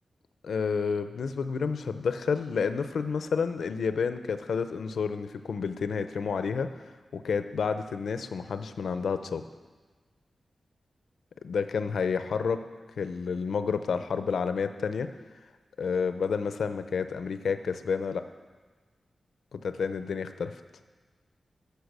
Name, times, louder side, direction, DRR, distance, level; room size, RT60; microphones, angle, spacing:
voice 1, 0.4-6.7 7.1-9.4 11.4-12.6 13.0-15.1 15.8-18.2 19.5-20.5, left 5 dB, 90° left, 10 dB, 0.5 m, -30 dB
13.0 x 6.6 x 6.7 m, 1.4 s
wide cardioid pair, 95°, 0 cm